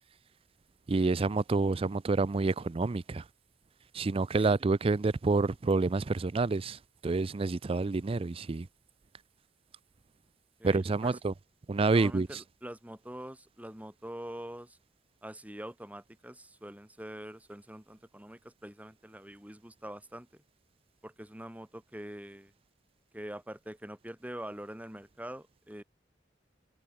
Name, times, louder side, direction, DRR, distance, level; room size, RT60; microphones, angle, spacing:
voice 1, 0.9-3.2 3.9-8.7 10.6-11.3 11.7-12.3, right 3 dB, 30° right, 0.4 m, -28 dB
voice 2, 10.6-11.2 11.9-14.8 15.2-20.4 21.0-22.5 23.1-25.8, right 1 dB, 10° right, 4.3 m, -44 dB
head